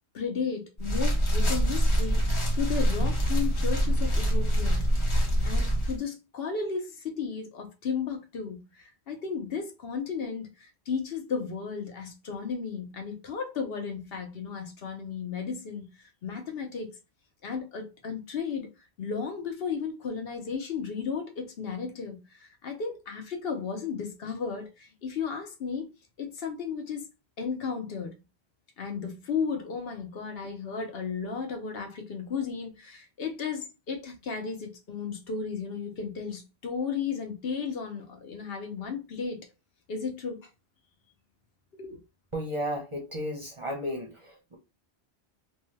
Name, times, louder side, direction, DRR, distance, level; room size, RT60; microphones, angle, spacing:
voice 1, 0.1-4.8 5.4-16.9 17.4-18.7 19.0-25.9 26.2-27.1 27.4-28.2 28.8-39.5 39.9-40.5 41.8-42.0, left 5 dB, 65° left, 0.9 m, -34 dB
sound 1, 0.8-6.0, equal, 30° left, 0.8 m, -25 dB
voice 2, 42.3-44.6, equal, 35° right, 0.6 m, -34 dB
2.6 x 2.2 x 3.2 m
omnidirectional pair, 1.1 m